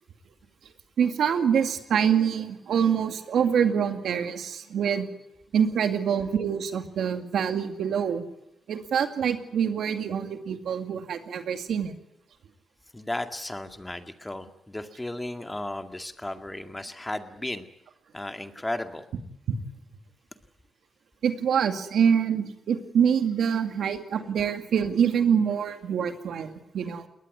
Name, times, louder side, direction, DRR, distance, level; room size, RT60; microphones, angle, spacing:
voice 1, 1.0-5.1 5.5-8.2 8.7-11.9 19.5-19.6 21.2-27.1, right 7 dB, 80° right, 7 dB, 2.3 m, -25 dB
voice 2, 12.9-17.7 18.1-19.1, left 1 dB, 15° left, 7 dB, 2.2 m, -34 dB
21.5 x 19.5 x 9.6 m, 0.79 s
cardioid pair, 75°, 0 cm